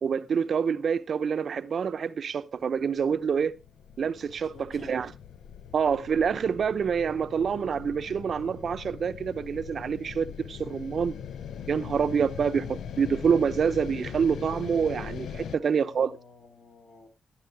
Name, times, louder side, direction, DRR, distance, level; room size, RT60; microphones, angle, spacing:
voice 1, 0.0-3.6 4.0-5.1 5.7-11.2 11.7-16.2, right 6 dB, 60° right, 0.7 m, -27 dB
sound 1, 3.0-15.6, left 8 dB, 80° left, 0.6 m, -41 dB
voice 2, 4.5-5.0 15.5-17.1, left 3 dB, 65° left, 3.6 m, -51 dB
15.5 x 10.0 x 2.7 m
cardioid pair, 80°, 0 cm